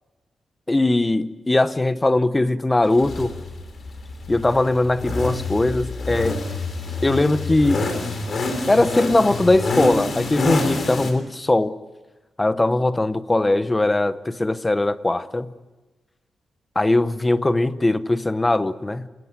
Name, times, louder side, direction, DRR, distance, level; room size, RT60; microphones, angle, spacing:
voice 1, 0.7-3.3 4.3-6.4 7.0-7.8 8.7-11.8 12.4-15.5 16.8-19.1, left 2 dB, 15° left, 0.8 m, -20 dB
sound 1, 3.0-11.1, left 3 dB, 40° left, 3.4 m, -27 dB
27.5 x 14.0 x 9.5 m
wide cardioid pair, 160°, 0 cm